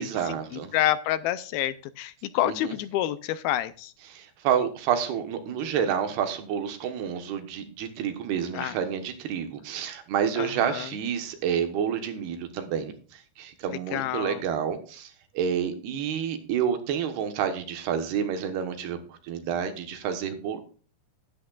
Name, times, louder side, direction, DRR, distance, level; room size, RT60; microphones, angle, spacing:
voice 1, 0.0-0.7 2.4-2.7 4.1-20.6, right 8 dB, 85° right, 7 dB, 3.2 m, -29 dB
voice 2, 0.5-3.9 8.5-8.8 10.4-10.9 13.9-14.4, left 13 dB, 80° left, 14 dB, 2.3 m, -28 dB
12.5 x 10.5 x 2.4 m, 0.39 s
omnidirectional pair, 4.6 m